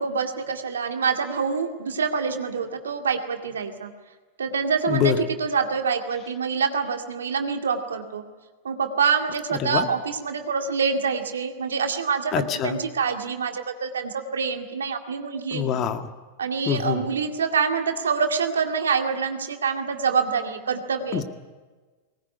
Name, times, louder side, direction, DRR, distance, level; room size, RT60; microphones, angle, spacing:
voice 1, 0.0-3.9 4.4-8.2 8.6-15.7 16.4-21.2, right 5 dB, 85° right, 5 dB, 2.2 m, -26 dB
voice 2, 4.9-5.2 9.6-9.9 12.3-12.8 15.5-16.1 16.7-17.0 21.1-21.2, left 9 dB, 40° left, 8 dB, 1.8 m, -25 dB
20.5 x 19.0 x 9.7 m, 1.3 s
hypercardioid pair, 100°, 0 cm